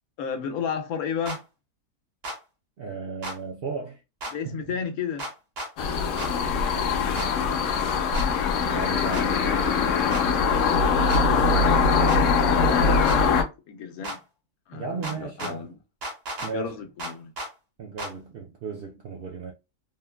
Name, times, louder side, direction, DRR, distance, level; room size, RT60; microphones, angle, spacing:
voice 1, 0.2-1.4 4.3-5.3 12.6-13.4 13.7-14.2 14.7-15.8 16.4-17.3, left 7 dB, 85° left, 1.1 m, -32 dB
jomox clap, 1.3-1.4 2.2-2.4 3.2-3.4 4.2-4.3 5.2-5.7 6.2-6.3 7.2-7.3 8.1-8.3 9.1-9.3 10.1-10.3 11.1-11.2 12.1-12.2 13.1-13.2 14.0-14.2 15.0-15.5 16.0-16.5 17.0-17.5 18.0-18.1, right 1 dB, 50° right, 1.0 m, -34 dB
voice 2, 2.8-4.0 4.3-4.8 6.5-7.3 8.7-9.4 11.2-11.8 14.7-15.7 16.4-16.8 17.8-19.5, right 5 dB, 65° right, 0.5 m, -36 dB
sound 1, 5.8-13.4, left 5 dB, 70° left, 0.9 m, -22 dB
3.5 x 2.2 x 2.2 m
omnidirectional pair, 1.5 m